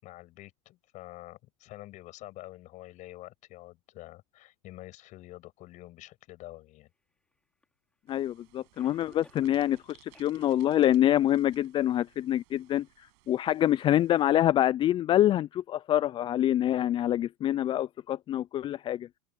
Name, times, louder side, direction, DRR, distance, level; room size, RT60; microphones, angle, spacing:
voice 1, 0.0-6.9, left 17 dB, 50° left, 7.5 m, -47 dB
Cough, 7.6-7.7 8.8-9.9 10.1-10.3 10.8-10.9 11.5-11.6, left 2 dB, 5° left, 2.8 m, -54 dB
voice 2, 8.1-19.1, left 12 dB, 30° left, 0.4 m, -26 dB
sound 1, 8.1-14.3, right 33 dB, 60° right, 6.8 m, -62 dB
open air
hypercardioid pair, 105°, 17 cm